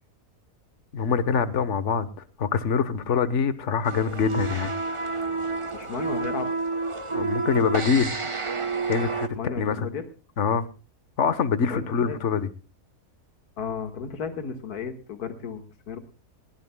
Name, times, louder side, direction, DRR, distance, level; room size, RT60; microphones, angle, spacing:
voice 1, 0.9-2.1 2.4-4.7 7.1-8.1 8.9-9.9 10.4-10.7 11.2-12.5, left 6 dB, 50° left, 14 dB, 1.3 m, -24 dB
sound 1, 3.8-9.3, right 4 dB, 25° right, 0.9 m, -29 dB
voice 2, 5.7-6.5 9.4-10.1 11.7-12.2 13.6-16.0, left 5 dB, 70° left, 8 dB, 2.1 m, -34 dB
20.5 x 17.5 x 2.2 m, 0.33 s
omnidirectional pair, 1.7 m